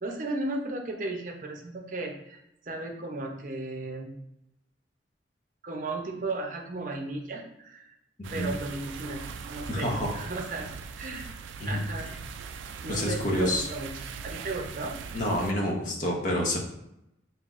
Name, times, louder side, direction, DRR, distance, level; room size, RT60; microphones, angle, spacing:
voice 1, 0.0-4.2 5.6-7.9 8.3-9.2 9.5-10.7 11.0-11.3 11.6-12.1 12.8-14.9, right 2 dB, 45° right, 2 dB, 0.6 m, -35 dB
sound 1, 8.2-15.5, right 6 dB, 85° right, 0.3 m, -41 dB
voice 2, 9.7-10.2 11.6-11.8 12.9-13.6 15.1-16.6, left 1 dB, 45° left, -1 dB, 0.9 m, -28 dB
5.7 x 2.8 x 2.4 m, 0.82 s
head